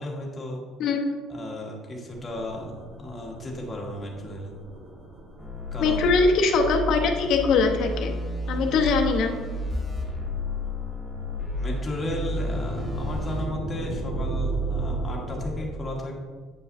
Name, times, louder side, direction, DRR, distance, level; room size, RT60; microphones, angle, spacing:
voice 1, 0.0-0.6 1.3-2.7 3.0-4.5 5.7-6.2 11.5-16.2, left 1 dB, 20° left, -1 dB, 1.3 m, -34 dB
voice 2, 0.8-1.1 5.8-8.1 8.5-9.3, left 4 dB, 55° left, 3 dB, 0.8 m, -22 dB
sound 1, 2.1-15.5, right 2 dB, 45° right, 1.8 m, -36 dB
sound 2, 5.4-13.5, left 1 dB, 5° right, 1.1 m, -31 dB
8.4 x 5.5 x 2.6 m, 1.5 s
cardioid pair, 150°, 0 cm